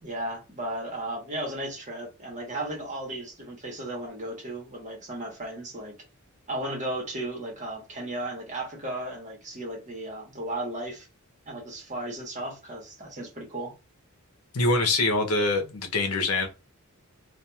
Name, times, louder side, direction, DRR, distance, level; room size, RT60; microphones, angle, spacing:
voice 1, 0.0-5.9 6.5-11.1 11.5-13.8, right 1 dB, 35° right, 1.1 m, -35 dB
voice 2, 14.5-16.5, left 2 dB, 80° left, 0.7 m, -24 dB
2.9 x 2.4 x 2.3 m
head